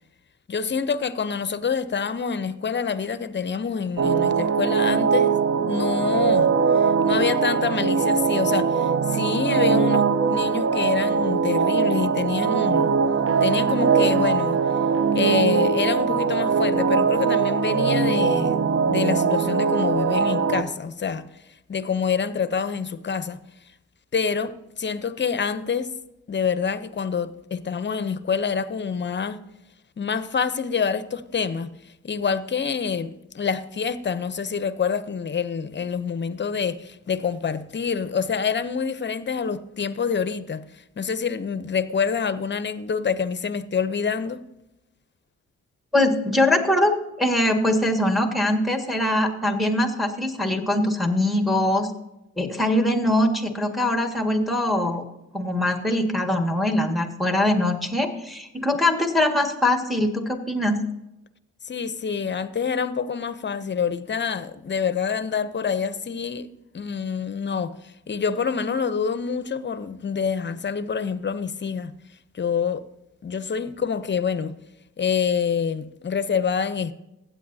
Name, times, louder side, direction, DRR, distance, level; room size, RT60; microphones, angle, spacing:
voice 1, 0.5-5.3 5.7-12.9 13.4-14.6 15.1-21.3 21.7-23.4 24.1-25.9 26.3-29.4 30.0-31.7 32.0-40.7 41.0-44.4 61.6-66.5 66.7-67.7 68.1-71.9 72.3-72.8 73.2-74.5 75.0-76.9, left 6 dB, 35° left, 0.7 m, -26 dB
sound 1, 4.0-20.6, right 6 dB, 45° right, 0.7 m, -21 dB
voice 2, 45.9-51.9 52.4-55.0 55.3-60.8, left 1 dB, ahead, 1.8 m, -22 dB
15.5 x 8.9 x 2.7 m
cardioid pair, 70°, 30 cm